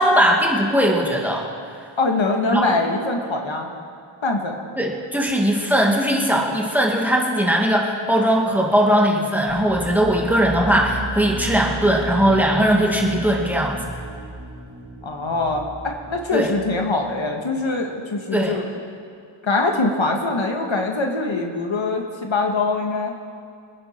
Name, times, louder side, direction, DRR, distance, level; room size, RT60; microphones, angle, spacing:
voice 1, 0.0-1.4 2.5-2.6 4.8-13.8 16.3-16.5 18.3-18.6, equal, 5° right, -1 dB, 2.3 m, -19 dB
voice 2, 2.0-3.7 4.2-4.6 15.0-18.6 19.4-23.1, left 3 dB, 65° left, 2 dB, 1.7 m, -23 dB
sound 1, 9.5-17.1, right 1 dB, 50° right, 4.1 m, -34 dB
26.5 x 9.9 x 4.5 m, 2.3 s
wide cardioid pair, 70°, 49 cm